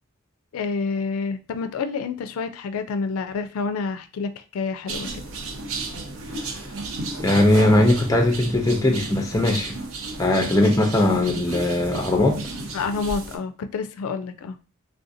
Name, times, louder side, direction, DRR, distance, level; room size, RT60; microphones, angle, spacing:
voice 1, 0.5-5.2 12.7-14.6, left 4 dB, 85° left, 8 dB, 0.3 m, -28 dB
sound 1, 4.9-13.4, right 3 dB, 75° right, 0.6 m, -33 dB
voice 2, 7.2-9.8 10.2-12.4, left 1 dB, 15° left, 2 dB, 0.5 m, -19 dB
3.4 x 2.6 x 2.5 m, 0.35 s
head